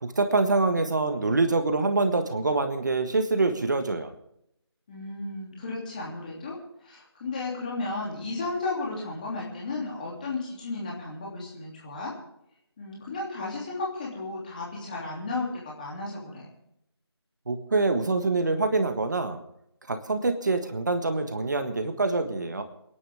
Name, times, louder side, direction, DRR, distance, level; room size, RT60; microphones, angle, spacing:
voice 1, 0.0-4.1 17.5-19.4 19.9-22.6, right 3 dB, 45° right, 8 dB, 1.6 m, -25 dB
voice 2, 4.9-6.6 6.8-12.1 12.8-16.5, left 3 dB, 20° left, -4 dB, 3.0 m, -34 dB
28.5 x 11.0 x 3.6 m, 0.78 s
figure-of-eight pair, 175°, 14 cm